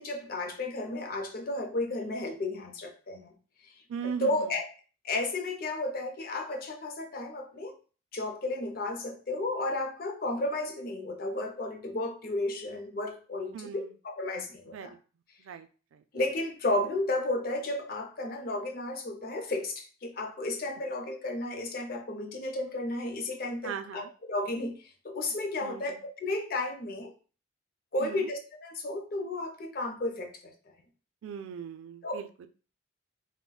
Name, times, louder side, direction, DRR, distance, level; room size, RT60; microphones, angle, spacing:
voice 1, 0.0-3.3 4.0-4.7 5.0-7.7 8.1-14.9 16.1-27.1 27.9-30.5 32.0-32.2, left 2 dB, 45° left, 0.4 m, -33 dB
voice 2, 3.9-4.5 13.5-13.9 14.7-15.0 15.4-16.0 23.6-24.1 25.6-26.0 28.0-28.3 31.2-32.5, right 7 dB, 75° right, 0.3 m, -39 dB
3.8 x 2.1 x 2.2 m
head